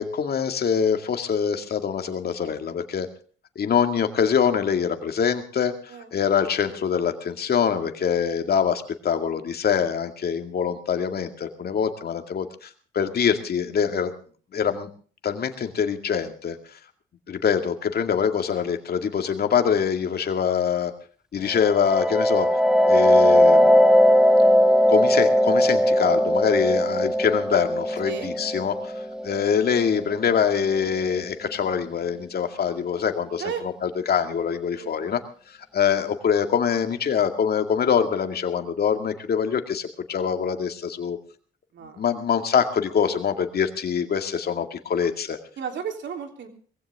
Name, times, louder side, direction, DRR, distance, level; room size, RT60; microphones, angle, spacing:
voice 1, 0.0-3.1 3.6-5.7 6.1-12.7 12.9-14.1 14.5-14.9 15.2-16.6 17.3-20.9 21.3-22.5 22.9-24.0 24.9-28.9 29.2-33.4 33.8-35.2 35.7-41.2 42.0-45.4, left 7 dB, 50° left, 6 dB, 2.2 m, -24 dB
sound 1, 21.5-31.0, equal, 5° right, 1.6 m, -19 dB
voice 2, 45.6-46.5, right 7 dB, 65° right, 5 dB, 3.4 m, -33 dB
20.5 x 16.0 x 3.6 m, 0.43 s
cardioid pair, 90°, 20 cm